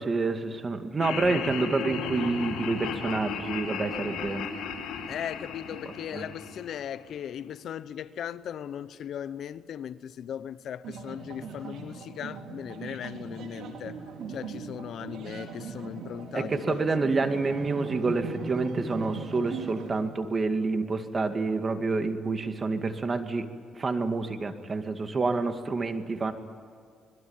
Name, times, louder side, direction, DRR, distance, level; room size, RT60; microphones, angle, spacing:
voice 1, 0.0-4.5 6.1-6.3 16.3-23.5 23.7-26.3, right 3 dB, 35° right, 2.3 m, -28 dB
Laughter, 1.0-7.2, left 6 dB, 90° left, 3.7 m, -35 dB
voice 2, 5.1-14.0 14.3-16.9, left 9 dB, 70° left, 0.9 m, -38 dB
sound 1, 10.8-20.0, right 5 dB, 75° right, 4.3 m, -39 dB
26.0 x 21.5 x 9.0 m
cardioid pair, 90°, 0 cm